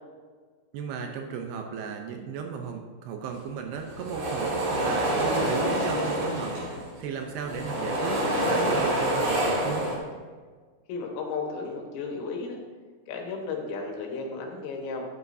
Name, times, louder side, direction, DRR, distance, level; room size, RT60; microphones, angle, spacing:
voice 1, 0.7-9.9, right 6 dB, 80° right, 3 dB, 2.5 m, -35 dB
sound 1, 3.8-7.0 7.3-10.0, right 1 dB, 55° right, 3.6 m, -27 dB
voice 2, 10.9-12.6 13.1-15.1, left 4 dB, 85° left, 1 dB, 3.7 m, -34 dB
12.5 x 8.6 x 2.7 m, 1.5 s
omnidirectional pair, 5.0 m